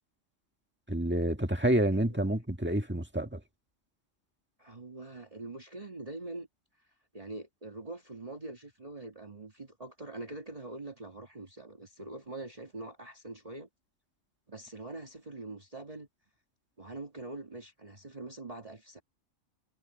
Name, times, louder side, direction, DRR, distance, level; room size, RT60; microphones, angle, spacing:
voice 1, 0.9-3.4, right 1 dB, 10° right, 1.8 m, -28 dB
voice 2, 4.6-6.5 7.1-13.7 14.5-16.1 16.8-19.0, right 2 dB, 25° right, 1.9 m, -44 dB
omnidirectional pair, 1.4 m